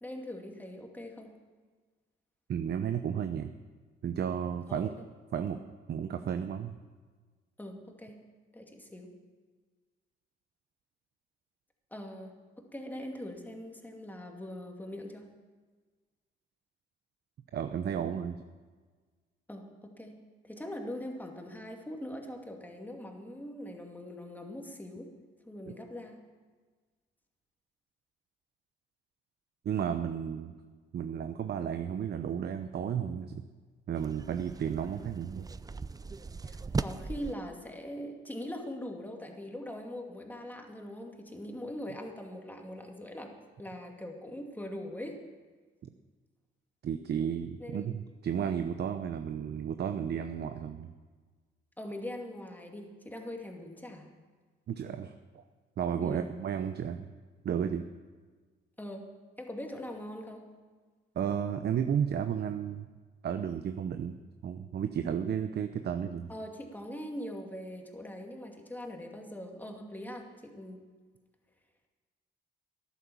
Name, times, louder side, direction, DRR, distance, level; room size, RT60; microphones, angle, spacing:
voice 1, 0.0-1.3 4.7-4.9 7.6-8.2 8.5-9.1 11.9-15.3 19.5-20.2 20.4-25.1 25.5-26.2 36.4-45.2 47.6-47.9 51.8-54.1 56.0-56.3 58.8-59.1 59.4-60.4 66.3-70.8, left 1 dB, 10° left, 2 dB, 2.4 m, -42 dB
voice 2, 2.5-3.5 4.0-4.9 5.3-5.6 5.9-6.8 17.5-18.4 29.6-30.5 30.9-33.4 33.9-35.5 46.8-50.9 54.7-55.4 55.8-57.0 57.4-57.8 61.2-62.9 63.2-64.2 64.4-66.3, right 8 dB, 55° right, 8 dB, 0.8 m, -33 dB
sound 1, 34.0-37.3, right 4 dB, 20° right, 0.5 m, -38 dB
14.0 x 11.5 x 7.1 m, 1.4 s
cardioid pair, 90°, 20 cm